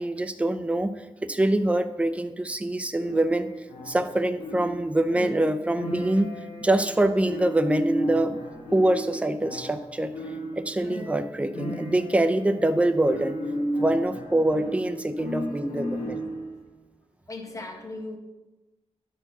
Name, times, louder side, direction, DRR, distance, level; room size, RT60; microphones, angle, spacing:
voice 1, 0.0-6.3 6.6-8.4 8.7-13.4 13.8-16.2, right 1 dB, 10° right, 8 dB, 0.6 m, -25 dB
sound 1, 3.0-16.6, equal, 90° left, 1.8 m, -34 dB
voice 2, 15.4-15.9 17.3-18.2, left 2 dB, 30° left, 2 dB, 1.4 m, -39 dB
11.5 x 4.6 x 5.9 m, 1.1 s
wide cardioid pair, 125°, 11 cm